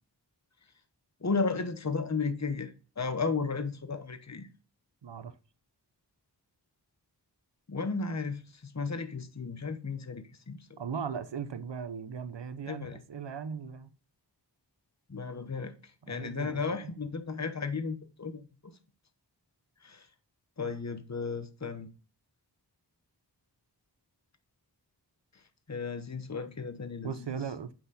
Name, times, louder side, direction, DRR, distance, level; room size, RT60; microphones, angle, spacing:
voice 1, 1.2-4.5 7.7-10.8 12.7-13.0 15.1-18.5 19.8-20.1 20.6-21.9 25.3-25.4 25.7-27.4, left 4 dB, 40° left, 1.1 m, -34 dB
voice 2, 5.0-5.3 10.8-13.9 16.0-16.9 27.0-27.7, right 6 dB, 90° right, 0.7 m, -38 dB
7.9 x 6.1 x 4.1 m
wide cardioid pair, 45°, 42 cm